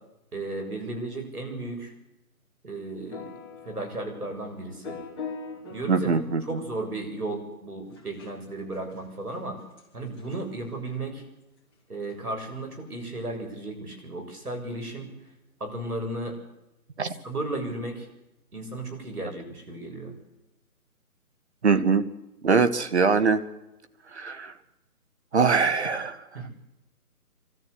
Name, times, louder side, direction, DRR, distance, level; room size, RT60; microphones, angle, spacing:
voice 1, 0.3-1.9 2.6-3.4 3.6-5.0 5.7-6.1 6.4-9.6 9.9-11.2 11.9-15.1 15.6-16.3 17.2-18.1 18.5-20.1 26.3-26.5, right 2 dB, 75° right, 4 dB, 7.4 m, -34 dB
sound 1, 3.1-6.9 8.0-8.3 9.0-9.1 9.3-9.4 9.8-9.9 10.2-10.4 12.1-12.2, left 5 dB, 10° left, 2.8 m, -42 dB
voice 2, 5.9-6.6 17.0-17.1 21.6-22.0 22.4-23.4 24.1-24.5 25.3-26.2, right 5 dB, 45° right, 11 dB, 1.5 m, -22 dB
24.0 x 13.5 x 8.3 m, 0.93 s
figure-of-eight pair, 155°, 45 cm